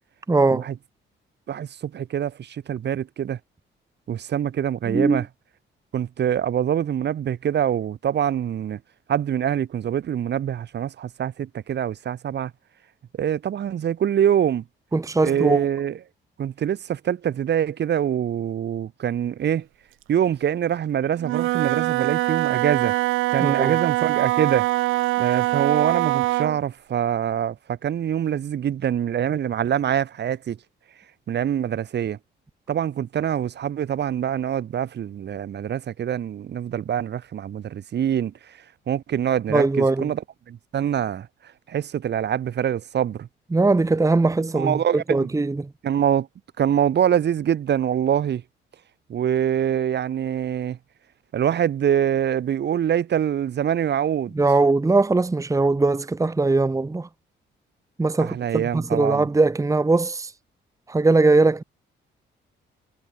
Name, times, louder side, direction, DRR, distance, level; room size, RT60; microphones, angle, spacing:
voice 1, 0.3-0.7 4.9-5.2 14.9-15.7 23.4-23.7 39.5-40.1 43.5-45.7 54.3-57.1 58.0-60.3 60.9-61.6, right 3 dB, 15° right, 1.1 m, -20 dB
voice 2, 1.5-3.4 4.1-5.3 5.9-8.8 9.1-12.5 13.2-14.6 15.2-16.0 16.4-19.7 20.1-22.9 23.3-24.7 25.2-30.6 31.3-32.2 32.7-38.3 38.9-40.2 40.5-41.3 41.7-43.3 44.6-45.3 45.8-46.3 46.6-48.4 49.1-50.8 51.3-54.3 58.2-59.3, right 9 dB, 60° right, 2.1 m, -24 dB
Wind instrument woodwind instrument, 21.2-26.6, right 17 dB, 90° right, 0.7 m, -23 dB
cardioid pair, 90°, 20 cm